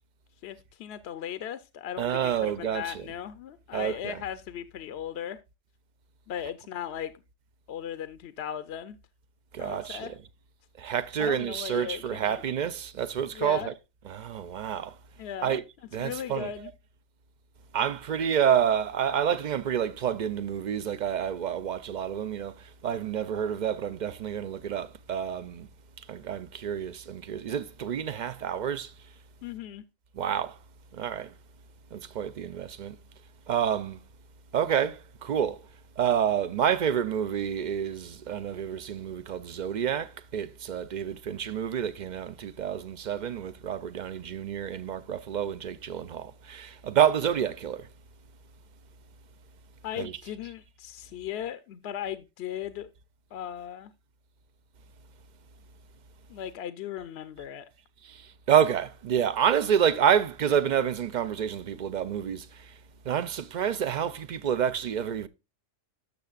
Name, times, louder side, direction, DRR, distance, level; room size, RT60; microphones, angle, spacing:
voice 1, 0.4-5.4 6.3-7.1 7.7-9.0 9.6-10.1 11.2-12.4 13.3-13.7 15.2-15.6 16.0-16.7 29.4-29.8 49.8-52.9 53.3-53.9 56.3-57.7, left 10 dB, 65° left, 0.8 m, -37 dB
voice 2, 2.0-3.0 3.7-4.2 6.4-6.5 9.5-10.2 10.8-13.7 14.0-14.9 15.4-15.6 15.9-16.5 17.7-25.7 26.1-28.9 30.2-30.6 30.9-31.3 31.9-33.0 33.5-34.0 34.5-35.6 36.0-47.9 50.0-50.3 58.0-62.7 63.1-65.3, right 8 dB, 60° right, 0.5 m, -28 dB
12.0 x 6.7 x 2.4 m
omnidirectional pair, 1.2 m